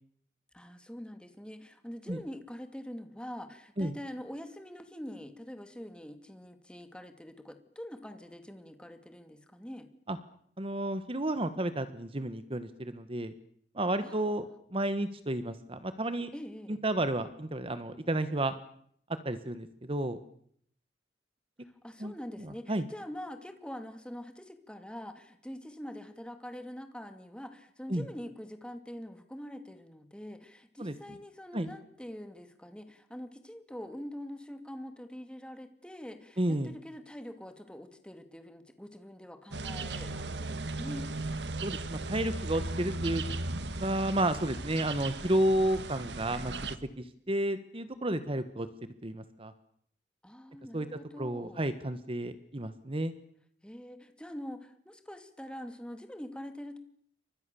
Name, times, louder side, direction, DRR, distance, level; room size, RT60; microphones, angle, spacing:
voice 1, 0.5-9.9 14.0-14.4 16.3-16.8 21.6-41.1 50.2-51.6 53.6-56.8, equal, 5° left, 7 dB, 2.6 m, -44 dB
voice 2, 10.6-13.3 13.7-16.3 16.7-18.5 19.2-20.2 22.0-22.8 27.9-28.0 30.8-30.9 31.5-31.7 36.4-36.7 41.6-43.2 43.8-46.5 47.0-48.7 49.0-49.5 50.7-53.1, right 1 dB, 30° right, 11 dB, 1.3 m, -31 dB
sound 1, 39.5-46.8, right 2 dB, 75° right, 1.6 m, -37 dB
30.0 x 24.5 x 7.0 m, 0.66 s
head